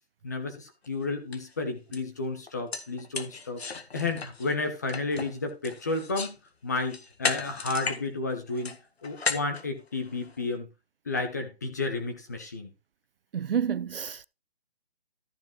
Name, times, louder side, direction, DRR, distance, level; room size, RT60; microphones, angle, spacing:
voice 1, 0.2-3.6 3.9-6.4 6.6-8.8 9.0-10.7 11.1-12.7, left 3 dB, 15° left, 1.1 m, -32 dB
sound 1, 0.8-0.9 1.3-1.5 1.9-2.0 2.5-6.4 6.8-8.0 8.3-10.4, left 4 dB, 80° left, 1.7 m, -35 dB
voice 2, 13.3-14.3, right 8 dB, 65° right, 0.5 m, -29 dB
14.0 x 5.0 x 4.6 m
hypercardioid pair, 180°, 31 cm